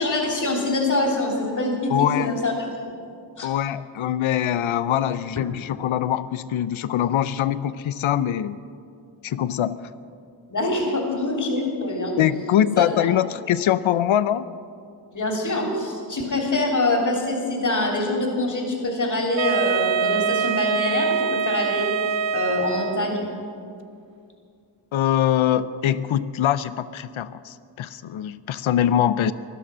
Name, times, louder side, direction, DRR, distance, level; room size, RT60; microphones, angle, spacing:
voice 1, 0.0-2.5 3.4-3.5 10.5-12.2 12.8-13.1 15.1-21.9 22.3-23.3, left 2 dB, 40° left, 1 dB, 3.3 m, -24 dB
voice 2, 1.9-2.3 3.4-8.6 9.2-9.8 12.2-14.5 24.9-29.3, left 10 dB, 80° left, 15 dB, 0.7 m, -23 dB
Wind instrument woodwind instrument, 19.4-23.2, right 6 dB, 70° right, 0.8 m, -24 dB
19.0 x 12.0 x 6.3 m, 2.4 s
cardioid pair, 55°, 47 cm